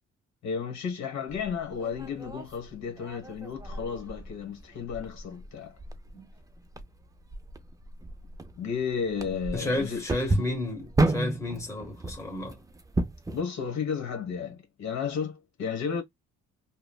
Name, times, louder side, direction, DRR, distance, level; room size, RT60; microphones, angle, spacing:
voice 1, 0.4-5.8 8.6-10.0 13.3-16.0, left 6 dB, 65° left, 1.3 m, -33 dB
sound 1, 1.3-13.4, right 2 dB, 10° right, 0.4 m, -33 dB
voice 2, 9.5-12.6, left 1 dB, 10° left, 1.1 m, -32 dB
3.0 x 2.0 x 2.2 m
cardioid pair, 90°, 30 cm